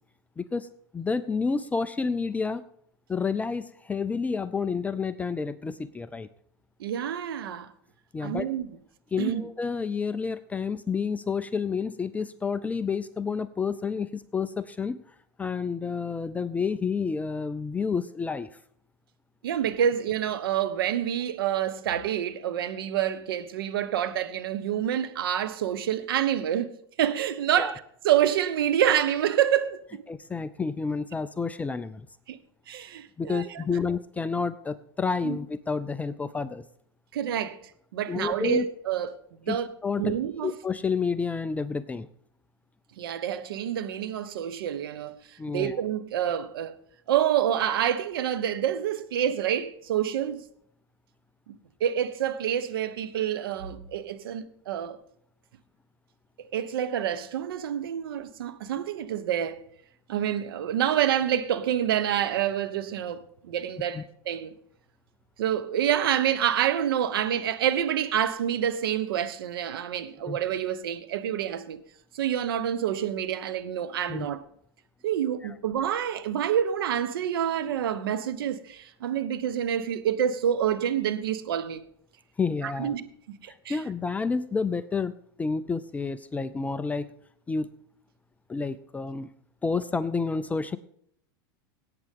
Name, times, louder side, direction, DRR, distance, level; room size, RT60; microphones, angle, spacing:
voice 1, 0.4-0.7 0.9-2.6 3.1-6.3 8.1-8.5 9.1-15.0 15.4-18.5 27.6-27.7 30.1-32.1 33.2-36.6 38.1-38.7 39.5-39.6 39.8-40.1 40.4-42.1 45.4-45.8 63.9-64.0 70.2-70.4 74.1-74.3 75.4-75.5 82.4-82.9 83.5-85.1 85.4-87.1 87.5-87.7 88.5-89.3 89.6-90.8, left 5 dB, 10° left, 0.4 m, -29 dB
voice 2, 6.8-7.7 8.2-8.7 9.2-9.5 19.4-30.0 32.3-32.4 32.7-33.8 35.2-35.4 37.1-37.6 37.9-39.2 39.5-39.7 40.0-40.5 43.0-46.8 47.1-50.4 51.5-55.0 56.5-59.6 60.1-64.5 65.4-71.8 72.1-74.4 75.0-81.8 82.6-83.8, right 10 dB, 85° right, 1.0 m, -27 dB
17.5 x 8.8 x 3.6 m
supercardioid pair, 125°, 12 cm